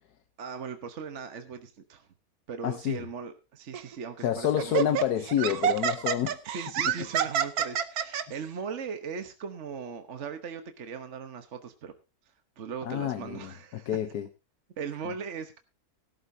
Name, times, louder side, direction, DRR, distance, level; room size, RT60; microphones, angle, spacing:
voice 1, 0.4-2.1 2.5-4.9 6.5-11.9 12.6-13.9 14.8-15.6, right 6 dB, 50° right, 7 dB, 1.3 m, -39 dB
voice 2, 2.6-3.0 4.2-6.4 12.8-14.3, left 10 dB, 80° left, 8 dB, 1.4 m, -28 dB
Laughter, 3.7-3.9 4.6-8.2, right 9 dB, 70° right, 1.4 m, -28 dB
17.5 x 12.5 x 2.7 m, 0.26 s
omnidirectional pair, 1.7 m